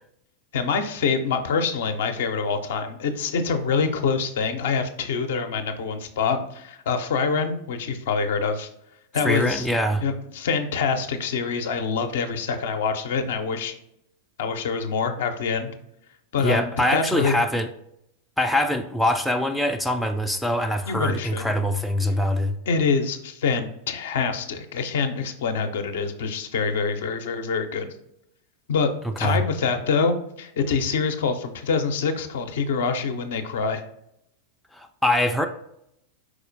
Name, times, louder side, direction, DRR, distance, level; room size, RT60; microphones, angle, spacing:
voice 1, 0.5-8.7 9.1-9.7 10.0-13.7 14.4-15.7 16.3-17.3 20.9-21.5 22.7-27.9 28.7-28.9 29.2-33.8, left 5 dB, 60° left, 7 dB, 0.5 m, -25 dB
voice 2, 9.2-10.0 16.4-17.7 18.4-22.5 29.2-29.4 34.7-35.5, left 1 dB, ahead, 5 dB, 0.3 m, -23 dB
4.8 x 4.1 x 2.6 m, 0.78 s
figure-of-eight pair, 90°, 0 cm